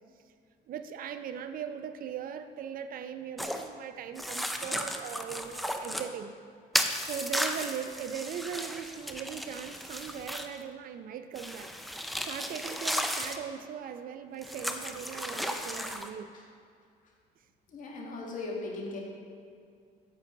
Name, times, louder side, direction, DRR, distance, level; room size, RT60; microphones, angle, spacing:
voice 1, 0.7-6.3 7.0-11.7 12.2-16.3, right 8 dB, 55° right, 10 dB, 0.5 m, -39 dB
sound 1, 3.4-3.7 4.2-6.1 6.7-10.6 11.4-13.4 14.4-16.1, equal, ahead, 0.5 m, -34 dB
voice 2, 17.7-19.0, left 3 dB, 50° left, -2 dB, 1.9 m, -38 dB
9.0 x 7.4 x 3.8 m, 2.3 s
cardioid pair, 110°, 17 cm